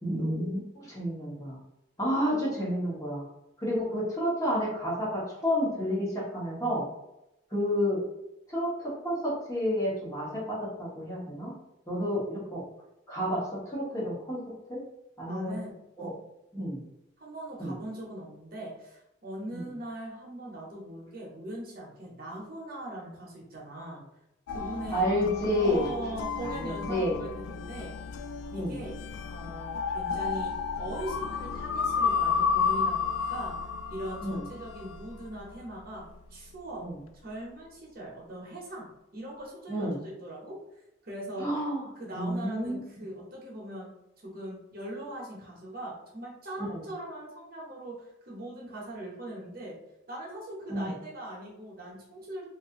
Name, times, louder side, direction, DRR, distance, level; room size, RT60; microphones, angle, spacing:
voice 1, 0.0-1.6 2.0-3.2 3.6-6.8 7.5-8.0 8.5-11.6 11.9-12.6 13.1-14.4 14.7-14.8 15.2-15.6 16.0-16.1 16.5-16.8 17.6-17.7 19.5-19.6 24.9-25.9 26.4-27.2 28.5-28.8 34.2-34.4 36.8-36.9 39.7-40.0 41.4-41.8 42.1-42.8 46.7-46.8 50.7-50.9, equal, 15° left, -7 dB, 1.1 m, -30 dB
voice 2, 15.3-16.1 17.2-24.0 24.5-25.1 25.6-28.0 28.5-29.0 29.3-33.6 33.9-36.0 36.3-36.8 37.2-41.6 42.0-43.9 44.2-49.8 50.1-52.4, right 1 dB, 45° right, -3 dB, 0.9 m, -40 dB
sound 1, 24.5-35.5, left 6 dB, 75° left, 0.3 m, -32 dB
2.7 x 2.5 x 3.6 m, 0.90 s
head